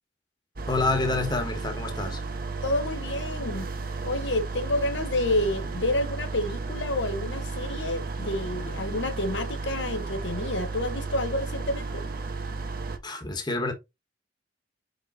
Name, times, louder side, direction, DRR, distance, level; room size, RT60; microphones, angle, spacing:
sound 1, 0.6-13.0, right 3 dB, 50° right, 0.9 m, -33 dB
voice 1, 0.7-2.2 13.0-13.7, left 3 dB, 25° left, 1.3 m, -28 dB
voice 2, 2.6-3.7 4.0-12.0, left 1 dB, 75° left, 1.1 m, -29 dB
5.4 x 4.8 x 3.8 m
head